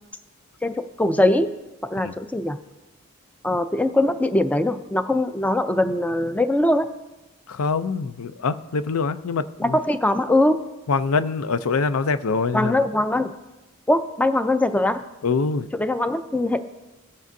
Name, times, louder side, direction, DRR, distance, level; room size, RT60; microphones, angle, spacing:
voice 1, 0.6-1.5 1.9-2.6 3.4-6.9 9.6-10.6 12.5-13.3 13.9-15.0 15.7-16.6, left 1 dB, 5° left, 9 dB, 0.4 m, -21 dB
voice 2, 7.5-9.8 10.9-12.8 15.2-15.7, left 4 dB, 75° left, 12 dB, 0.5 m, -24 dB
17.5 x 7.5 x 2.7 m, 1.0 s
head